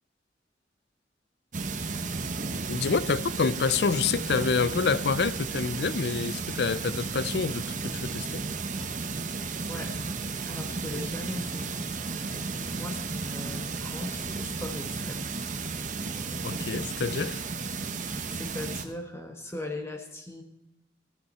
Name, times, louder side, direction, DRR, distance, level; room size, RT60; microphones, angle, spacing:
sound 1, 1.5-18.8, right 4 dB, 45° right, 1.0 m, -33 dB
voice 1, 2.7-8.4 16.4-17.4, left 5 dB, 65° left, 0.5 m, -27 dB
voice 2, 10.5-11.7 12.7-15.3 18.3-20.4, left 1 dB, 15° left, 1.2 m, -38 dB
15.5 x 12.5 x 4.3 m
head